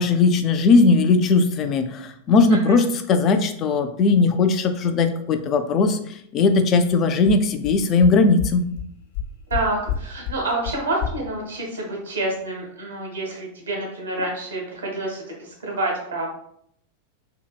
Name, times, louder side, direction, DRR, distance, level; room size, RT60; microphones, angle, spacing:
voice 1, 0.0-6.0 6.3-8.6, left 4 dB, 30° left, 8 dB, 0.3 m, -18 dB
sound 1, 7.3-7.4 7.6-7.7 8.0-8.1 8.4-8.5 8.8-8.9 9.1-9.6 9.9-10.0 10.2-10.3 10.6-10.7 11.0-11.1, left 11 dB, 55° left, 0.7 m, -27 dB
voice 2, 9.5-16.3, right 2 dB, 70° right, -1 dB, 1.0 m, -28 dB
2.7 x 2.7 x 2.2 m, 0.68 s
figure-of-eight pair, 90°, 0 cm